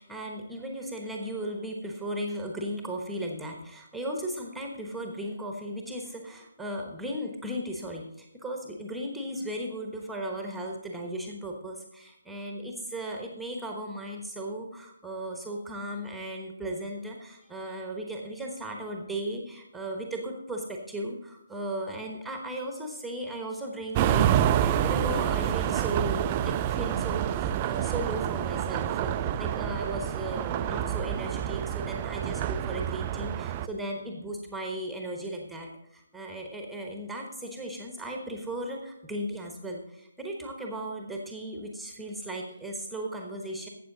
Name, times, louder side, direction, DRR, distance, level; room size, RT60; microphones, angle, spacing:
voice 1, 0.0-43.7, right 1 dB, ahead, 1 dB, 1.1 m, -36 dB
sound 1, 23.9-33.7, right 10 dB, 25° right, 0.3 m, -28 dB
12.5 x 8.1 x 3.9 m, 0.81 s
figure-of-eight pair, 140°, 0 cm